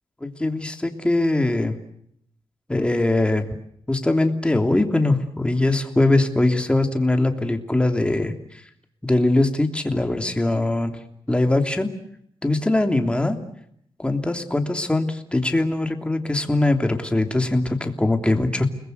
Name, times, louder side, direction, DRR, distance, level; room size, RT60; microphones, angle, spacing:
voice 1, 0.2-1.8 2.7-3.5 3.9-8.6 9.0-11.0 11.3-11.9 12.4-13.4 14.0-18.7, left 2 dB, 10° left, 5 dB, 3.1 m, -21 dB
30.0 x 21.0 x 8.1 m, 0.71 s
cardioid pair, 100°, 9 cm